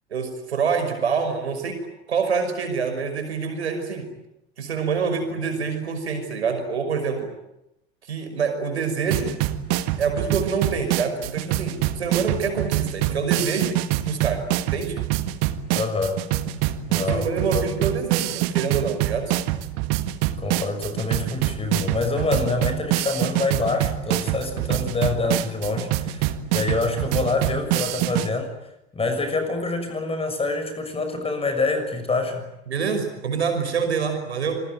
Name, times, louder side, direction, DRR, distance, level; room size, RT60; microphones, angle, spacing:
voice 1, 0.1-1.8 2.1-4.1 4.6-7.3 8.1-9.4 10.0-14.4 14.7-15.0 17.0-19.3 32.7-34.6, right 5 dB, 75° right, 6 dB, 5.8 m, -26 dB
sound 1, 9.1-28.3, right 13 dB, 50° right, 1.7 m, -25 dB
voice 2, 15.7-16.2 16.9-17.7 20.4-28.5 28.9-32.4, left 3 dB, 15° left, 8 dB, 6.4 m, -26 dB
27.5 x 22.0 x 9.2 m, 0.87 s
figure-of-eight pair, 75°, 33 cm